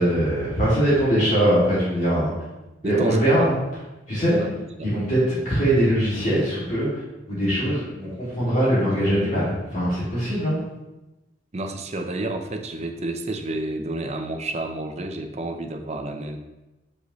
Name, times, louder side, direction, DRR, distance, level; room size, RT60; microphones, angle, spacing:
voice 1, 0.0-2.3 2.8-3.8 4.1-4.4 4.8-6.9 7.3-10.6, right 1 dB, 40° left, -9 dB, 2.4 m, -21 dB
voice 2, 2.8-3.5 4.4-4.9 11.5-16.4, right 2 dB, 35° right, 5 dB, 0.6 m, -30 dB
8.2 x 5.4 x 3.1 m, 1.0 s
head